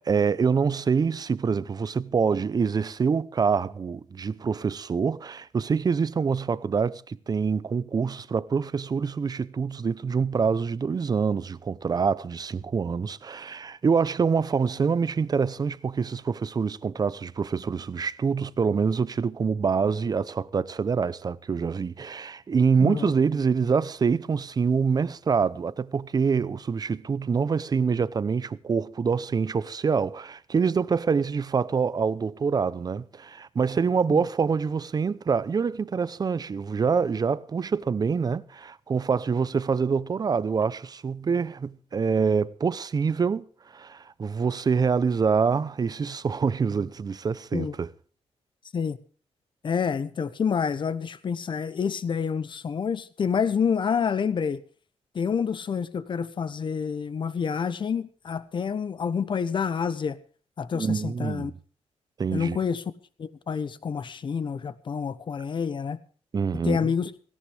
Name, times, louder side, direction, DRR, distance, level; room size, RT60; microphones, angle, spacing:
voice 1, 0.0-43.4 43.7-47.9 60.7-61.5 62.2-62.6 66.3-66.9, right 5 dB, 35° right, 0.7 m, -25 dB
voice 2, 22.8-23.1 34.1-34.2 47.5-47.7 48.7-49.0 49.6-54.6 55.1-60.2 60.6-61.5 62.3-62.8 63.2-66.0 66.6-67.1, left 6 dB, 45° left, 1.1 m, -28 dB
17.5 x 17.0 x 3.5 m
wide cardioid pair, 135°, 11 cm